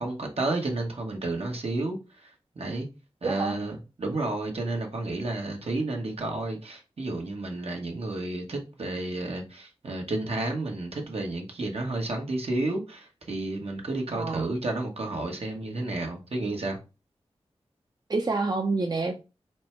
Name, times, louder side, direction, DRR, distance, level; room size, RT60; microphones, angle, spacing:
voice 1, 0.0-2.0 2.2-2.9 3.2-16.8, right 2 dB, 65° right, 1.2 m, -31 dB
voice 2, 3.2-3.6 14.1-14.5 18.1-19.2, right 3 dB, 40° right, 0.6 m, -28 dB
4.3 x 2.2 x 4.4 m
cardioid pair, 45°, 11 cm